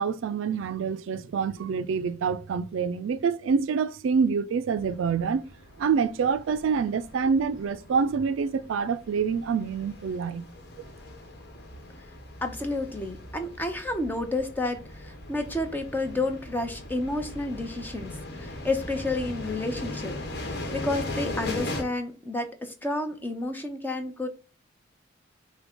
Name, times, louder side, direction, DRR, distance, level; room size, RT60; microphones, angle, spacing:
voice 1, 0.0-5.4 5.8-10.4, right 6 dB, 75° right, 0.3 m, -26 dB
sound 1, 4.7-21.8, left 1 dB, 55° left, 1.1 m, -39 dB
voice 2, 12.4-24.3, left 2 dB, 10° left, 0.7 m, -31 dB
5.9 x 2.2 x 3.7 m
head